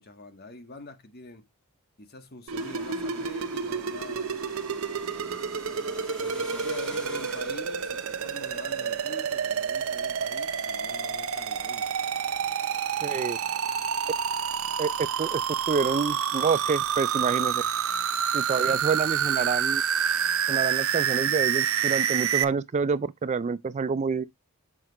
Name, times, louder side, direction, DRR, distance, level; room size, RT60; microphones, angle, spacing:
voice 1, 0.0-1.4 2.0-4.4 5.8-11.9 13.0-13.4, left 2 dB, 45° left, 1.5 m, -46 dB
sound 1, 2.5-22.4, right 7 dB, 70° right, 0.7 m, -28 dB
sound 2, 2.6-9.3, equal, 5° left, 1.6 m, -46 dB
voice 2, 13.0-13.4 14.8-14.9 15.2-17.6 18.3-19.8 20.5-24.2, right 5 dB, 30° right, 0.3 m, -27 dB
7.5 x 4.9 x 3.0 m
head